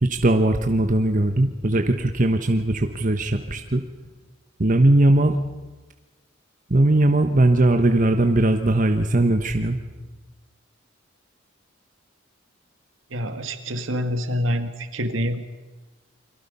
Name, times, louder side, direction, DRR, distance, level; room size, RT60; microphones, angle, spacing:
voice 1, 0.0-3.8 4.6-5.4 6.7-9.8, right 1 dB, 40° right, 6 dB, 1.1 m, -19 dB
voice 2, 13.1-15.5, equal, 70° right, 8 dB, 2.1 m, -26 dB
29.0 x 23.0 x 5.6 m, 1.2 s
head